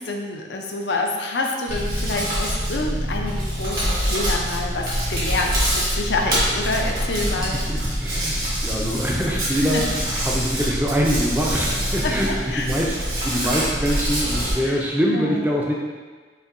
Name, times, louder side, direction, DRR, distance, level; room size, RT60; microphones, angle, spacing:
voice 1, 0.0-7.6 9.7-9.8 12.0-12.7 14.7-14.8 15.1-15.3, left 2 dB, 80° left, 2 dB, 0.5 m, -27 dB
Hands, 1.7-14.5, equal, 55° right, 1.4 m, -25 dB
voice 2, 7.3-13.0 13.2-15.7, equal, 10° right, -3 dB, 0.5 m, -24 dB
5.5 x 2.7 x 2.5 m, 1.5 s
head